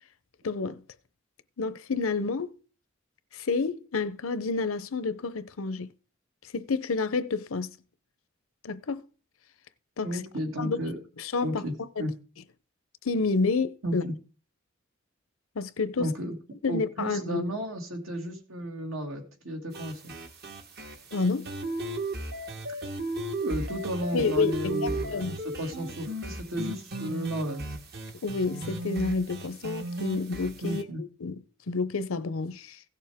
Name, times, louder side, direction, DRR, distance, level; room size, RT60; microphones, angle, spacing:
voice 1, 0.4-0.8 1.6-2.6 3.3-5.9 6.5-7.8 8.6-9.0 10.0-10.2 10.6-10.8 11.2-11.6 12.0-12.1 13.0-14.0 15.6-16.1 16.6-17.4 21.1-21.5 24.1-25.4 28.2-32.8, left 4 dB, 80° left, 0.7 m, -29 dB
voice 2, 10.0-11.0 11.4-12.1 13.8-14.1 16.0-16.4 16.7-20.1 23.4-27.6 30.6-31.0, equal, 75° right, 2.3 m, -33 dB
sound 1, 19.7-30.8, right 1 dB, 50° right, 1.3 m, -36 dB
16.0 x 6.8 x 3.5 m
head